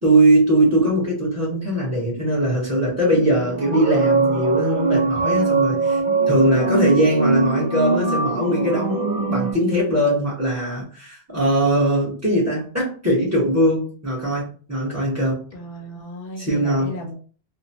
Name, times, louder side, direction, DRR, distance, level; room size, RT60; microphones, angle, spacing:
voice 1, 0.0-6.0 6.3-15.4 16.4-16.9, right 1 dB, 15° right, -4 dB, 1.1 m, -20 dB
sound 1, 3.4-9.5, right 4 dB, 50° right, 0.6 m, -22 dB
voice 2, 8.9-9.3 15.5-17.1, equal, 65° left, 1 dB, 0.7 m, -36 dB
2.9 x 2.1 x 2.6 m, 0.41 s
omnidirectional pair, 1.0 m